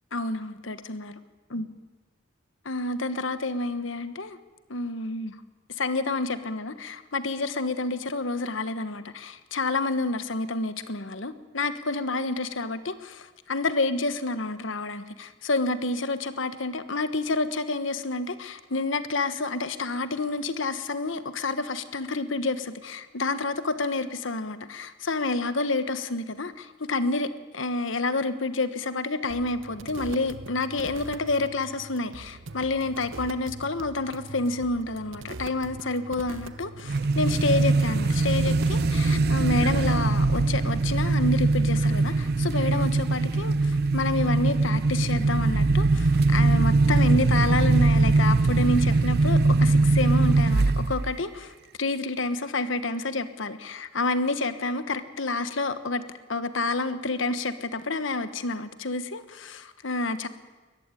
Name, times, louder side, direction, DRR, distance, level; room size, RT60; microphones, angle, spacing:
voice 1, 0.1-1.1 1.5-1.7 2.6-4.4 4.7-5.3 5.8-51.5 51.8-60.3, left 3 dB, 70° left, 12 dB, 1.3 m, -29 dB
sound 1, 29.3-40.0, right 3 dB, 70° right, 1.0 m, -42 dB
sound 2, 36.9-51.1, right 3 dB, 55° right, 0.6 m, -22 dB
21.5 x 14.5 x 9.8 m, 1.3 s
head